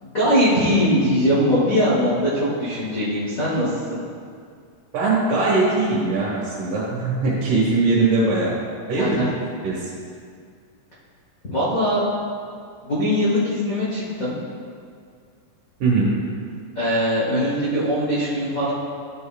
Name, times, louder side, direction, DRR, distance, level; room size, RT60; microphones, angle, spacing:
voice 1, 0.0-4.0 9.0-9.3 11.5-12.0 12.8-14.4 16.7-18.7, equal, 90° left, -9 dB, 0.7 m, -21 dB
voice 2, 4.9-8.6 8.9-9.2 9.6-9.9 15.8-16.2, right 3 dB, 75° right, -7 dB, 2.9 m, -21 dB
12.0 x 5.5 x 2.4 m, 2.2 s
omnidirectional pair, 3.8 m